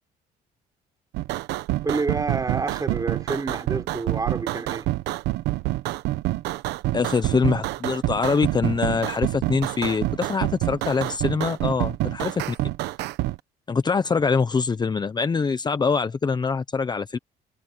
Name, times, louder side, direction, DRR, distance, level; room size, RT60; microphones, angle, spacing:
sound 1, 1.1-13.4, right 17 dB, 85° right, 1.0 m, -27 dB
voice 1, 1.8-4.9, right 4 dB, 20° right, 4.6 m, -28 dB
voice 2, 6.9-12.7 13.7-17.2, left 5 dB, 25° left, 1.0 m, -24 dB
cardioid pair, 110°, 17 cm